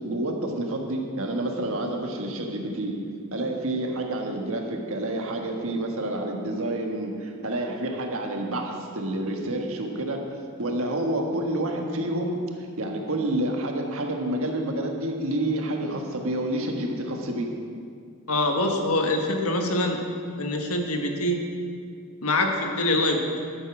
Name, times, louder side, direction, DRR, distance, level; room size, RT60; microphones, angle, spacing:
voice 1, 0.0-2.9 3.3-10.2 10.6-12.4 12.8-17.5, right 1 dB, 65° right, 2 dB, 1.6 m, -28 dB
voice 2, 18.3-20.0 20.4-21.4 22.2-23.4, left 1 dB, 80° left, 3 dB, 1.5 m, -24 dB
12.0 x 8.3 x 6.2 m, 2.3 s
head